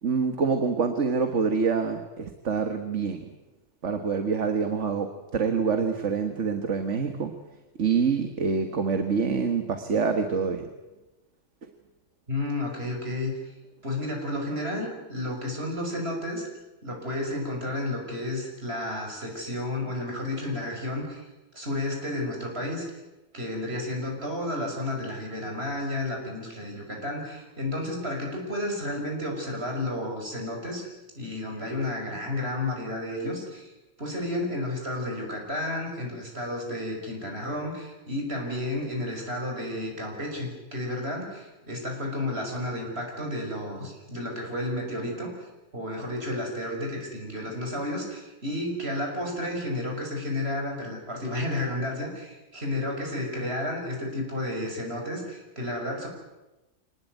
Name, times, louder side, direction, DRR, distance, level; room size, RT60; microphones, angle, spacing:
voice 1, 0.0-3.3 3.8-7.3 7.8-10.6, right 5 dB, 75° right, 7 dB, 1.9 m, -26 dB
voice 2, 12.3-13.3 13.8-16.5 16.8-21.3 21.5-22.9 23.3-30.9 31.2-33.7 34.0-45.3 45.7-56.1, left 1 dB, 55° right, 1 dB, 6.4 m, -32 dB
26.0 x 19.5 x 9.3 m, 1.1 s
omnidirectional pair, 1.3 m